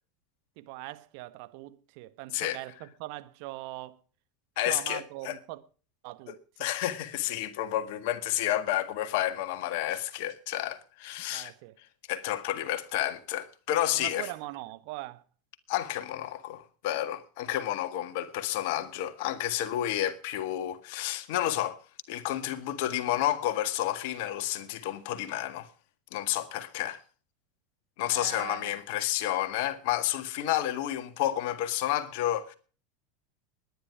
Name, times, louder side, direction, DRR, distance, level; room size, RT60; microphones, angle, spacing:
voice 1, 0.6-4.0 4.6-5.6 6.0-6.7 11.3-11.8 13.9-15.2 28.1-28.8, right 18 dB, 55° right, 1.3 m, -41 dB
voice 2, 4.6-5.4 6.6-11.5 12.1-14.3 15.7-21.8 22.1-25.7 26.1-27.0 28.0-32.5, left 13 dB, 55° left, 1.7 m, -30 dB
20.0 x 10.0 x 4.8 m
figure-of-eight pair, 80°, 0 cm